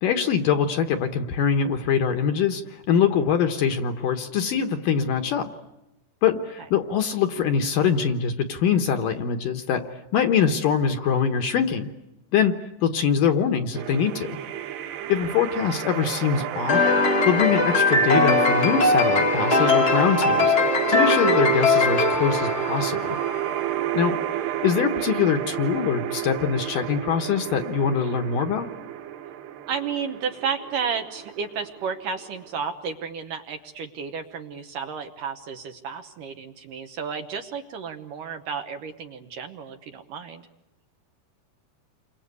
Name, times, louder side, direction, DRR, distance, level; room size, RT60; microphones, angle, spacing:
voice 1, 0.0-5.5 6.2-9.8 10.1-11.9 12.3-12.5 12.8-14.4 15.1-16.8 17.2-20.5 20.9-23.2 23.9-24.2 24.6-28.7, left 7 dB, 65° left, 6 dB, 2.4 m, -23 dB
sound 1, 13.7-32.7, right 11 dB, 80° right, 3.2 m, -30 dB
sound 2, 16.7-23.3, left 4 dB, 45° left, 1.2 m, -21 dB
voice 2, 23.8-24.2 29.7-40.4, right 6 dB, 65° right, 6 dB, 2.4 m, -32 dB
29.0 x 24.0 x 8.3 m, 0.93 s
omnidirectional pair, 4.8 m